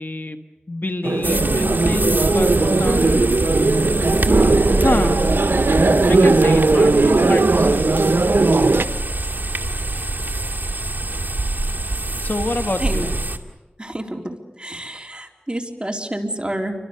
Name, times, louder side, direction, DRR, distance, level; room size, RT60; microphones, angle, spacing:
voice 1, 0.0-2.5 2.8-3.3 4.8-5.2 6.1-7.9 12.2-13.0, left 2 dB, 55° left, 7 dB, 1.5 m, -27 dB
sound 1, 1.0-8.8, right 3 dB, 85° right, 0.9 m, -17 dB
sound 2, 1.2-13.4, right 2 dB, 60° right, 2.1 m, -24 dB
voice 2, 12.8-13.1 13.8-16.7, right 1 dB, 25° right, 2 dB, 3.7 m, -29 dB
29.5 x 25.0 x 6.7 m, 1.2 s
wide cardioid pair, 50°, 4 cm